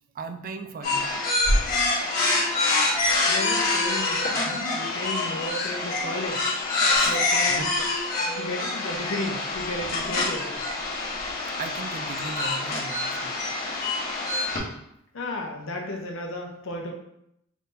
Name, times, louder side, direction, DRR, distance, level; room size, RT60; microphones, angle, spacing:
voice 1, 0.1-1.1 4.5-4.6 6.8-8.1 11.0-11.1 11.6-13.4, right 3 dB, 45° right, 7 dB, 0.4 m, -38 dB
sound 1, 0.8-14.6, left 2 dB, 45° left, 1.1 m, -26 dB
voice 2, 3.3-6.5 7.0-7.7 8.3-10.5 15.1-16.9, left 1 dB, 70° left, 1 dB, 0.7 m, -34 dB
4.0 x 3.8 x 2.6 m, 0.77 s
head